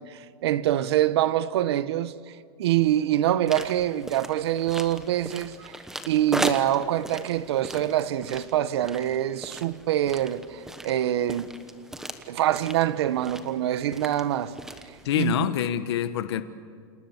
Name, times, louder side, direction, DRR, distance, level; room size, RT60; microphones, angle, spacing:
voice 1, 0.0-5.8 6.1-11.5 12.3-14.5 14.9-15.5, right 12 dB, 85° right, 1.2 m, -25 dB
sound 1, 3.5-15.3, right 1 dB, 5° right, 1.1 m, -38 dB
voice 2, 15.0-16.4, left 11 dB, 85° left, 1.2 m, -26 dB
29.0 x 27.5 x 7.3 m
supercardioid pair, 175°, 13 cm